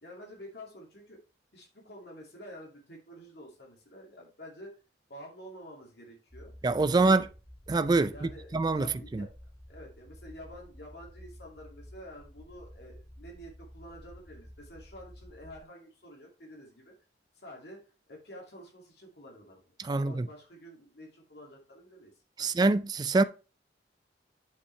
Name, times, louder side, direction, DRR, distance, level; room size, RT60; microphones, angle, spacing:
voice 1, 0.0-1.2 1.5-4.7 5.1-6.5 6.9-7.3 8.1-9.3 9.7-16.9 17.3-17.8 18.1-22.1 22.4-22.5, equal, 65° left, 2.3 m, -49 dB
sound 1, 6.3-15.6, equal, ahead, 1.5 m, -51 dB
voice 2, 6.6-7.2 7.7-8.9 9.1-9.3 19.8-20.3 22.4-23.2, right 3 dB, 25° right, 0.3 m, -25 dB
8.2 x 5.6 x 3.2 m
head